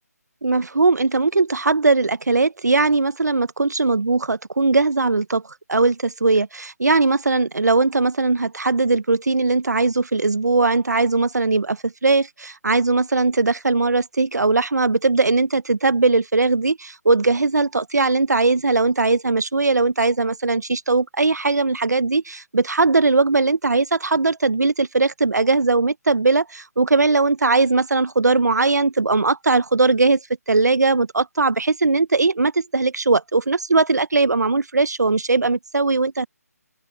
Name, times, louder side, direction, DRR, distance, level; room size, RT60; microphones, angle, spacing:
voice 1, 0.4-5.4 5.7-30.2 30.5-36.3, right 3 dB, 85° right, 1.1 m, -19 dB
open air
figure-of-eight pair, 155°, 9 cm